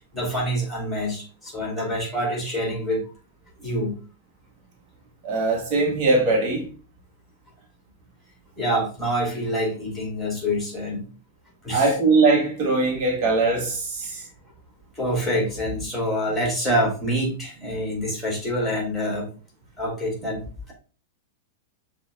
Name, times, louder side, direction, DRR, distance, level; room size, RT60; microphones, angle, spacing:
voice 1, 0.1-3.0 3.6-3.9 8.6-11.1 11.6-11.9 14.0-14.3 15.0-19.3 19.8-20.7, equal, ahead, 2.2 m, -26 dB
voice 2, 5.2-6.7 11.7-14.2, right 3 dB, 40° right, 1.1 m, -21 dB
6.1 x 2.4 x 3.6 m
figure-of-eight pair, 95°, 0 cm